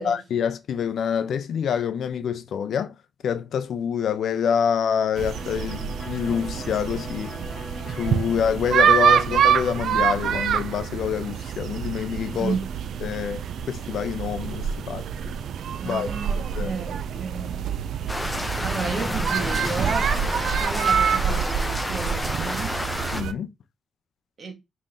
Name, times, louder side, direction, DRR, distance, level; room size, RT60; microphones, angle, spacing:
voice 1, 0.0-2.9 3.2-7.4 8.0-12.6 13.0-13.4 13.7-15.1 15.8-16.1 16.5-16.7 23.1-23.5, left 8 dB, 70° left, 0.5 m, -26 dB
sound 1, 5.2-23.3, right 8 dB, 75° right, 0.4 m, -26 dB
Electric guitar, 5.3-13.0, left 2 dB, 30° left, 1.1 m, -43 dB
voice 2, 15.7-17.7 18.6-20.1 20.6-22.8 24.4-24.5, right 5 dB, 50° right, 1.4 m, -32 dB
sound 2, 18.1-23.2, left 1 dB, 10° left, 0.7 m, -30 dB
5.4 x 3.2 x 2.7 m
cardioid pair, 90°, 0 cm